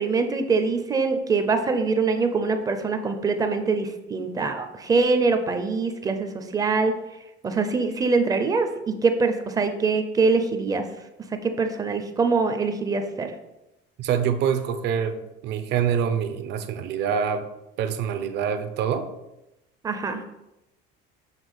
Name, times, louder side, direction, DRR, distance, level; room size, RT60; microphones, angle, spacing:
voice 1, 0.0-6.9 7.4-10.8 11.4-13.3 19.8-20.2, right 4 dB, 20° right, 7 dB, 0.5 m, -23 dB
voice 2, 14.0-17.5 17.8-19.1, right 8 dB, 55° right, 9 dB, 0.6 m, -25 dB
7.4 x 3.2 x 5.3 m, 0.92 s
cardioid pair, 170°, 20 cm